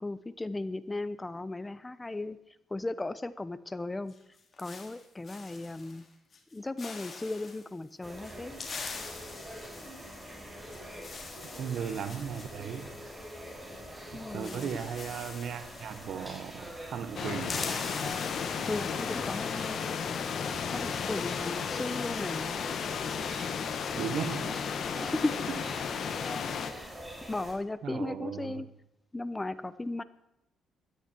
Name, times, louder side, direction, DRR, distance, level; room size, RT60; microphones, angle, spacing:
voice 1, 0.0-2.4 2.7-4.1 4.6-6.0 6.5-8.5 14.1-14.8 18.7-19.8 20.7-22.6 25.0-25.3 26.7-27.0 27.3-28.7 29.1-30.0, left 2 dB, 15° left, 0.9 m, -36 dB
sound 1, 4.1-6.0 6.3-6.5 6.8-7.7 8.2-13.7 14.0-14.1 14.3-16.7 16.9-19.4, left 4 dB, 40° left, 3.4 m, -44 dB
sound 2, 8.0-27.5, equal, 10° right, 6.2 m, -44 dB
voice 2, 11.6-12.9 14.1-17.6 23.9-24.6 27.8-28.6, right 7 dB, 70° right, 1.4 m, -36 dB
sound 3, 17.2-26.7, left 7 dB, 60° left, 1.8 m, -34 dB
16.5 x 13.0 x 4.6 m
cardioid pair, 90°, 0 cm